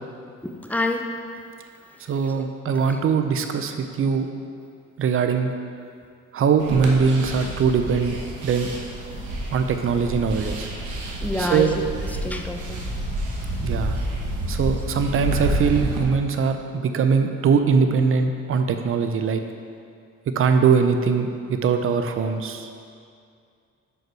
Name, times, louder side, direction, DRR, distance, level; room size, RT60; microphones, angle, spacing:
voice 1, 0.4-1.1 2.4-2.5 2.9-3.0 11.2-12.9, left 2 dB, 5° left, 3 dB, 0.6 m, -28 dB
voice 2, 2.1-4.3 5.0-5.5 6.3-8.2 8.4-8.7 9.5-10.7 11.4-11.8 13.6-14.0 14.5-19.4 20.4-22.7, right 6 dB, 45° right, 7 dB, 0.6 m, -21 dB
sound 1, 6.6-16.0, right 1 dB, 80° right, 1.1 m, -29 dB
5.8 x 5.4 x 4.6 m, 2.3 s
cardioid pair, 90°, 30 cm